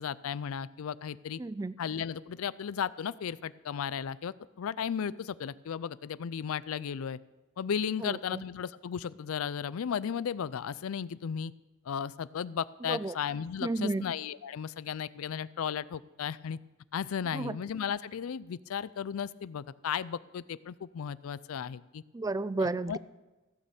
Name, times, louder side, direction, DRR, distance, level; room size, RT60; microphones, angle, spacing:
voice 1, 0.0-1.4 1.8-7.2 7.6-11.5 11.9-16.6 16.9-22.0 22.9-23.0, left 7 dB, 70° left, 18 dB, 0.4 m, -35 dB
voice 2, 1.4-1.8 8.0-8.4 12.9-13.1 13.6-14.0 17.3-17.6 22.1-23.0, right 2 dB, 15° right, 16 dB, 0.3 m, -32 dB
15.5 x 6.6 x 7.1 m, 1.1 s
head